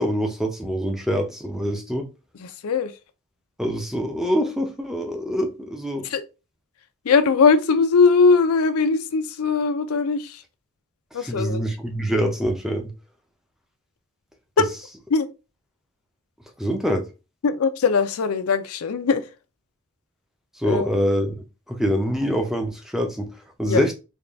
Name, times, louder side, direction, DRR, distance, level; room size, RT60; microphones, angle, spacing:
voice 1, 0.0-2.1 3.6-6.1 11.2-12.9 16.6-17.1 20.6-23.3 23.6-23.9, equal, ahead, 0.5 m, -25 dB
voice 2, 2.3-2.9 6.0-6.2 7.0-10.4 11.1-11.6 14.6-14.7 15.1-15.3 17.4-19.3 20.6-20.9 23.6-23.8, left 4 dB, 85° left, 0.5 m, -20 dB
3.6 x 2.3 x 3.4 m
head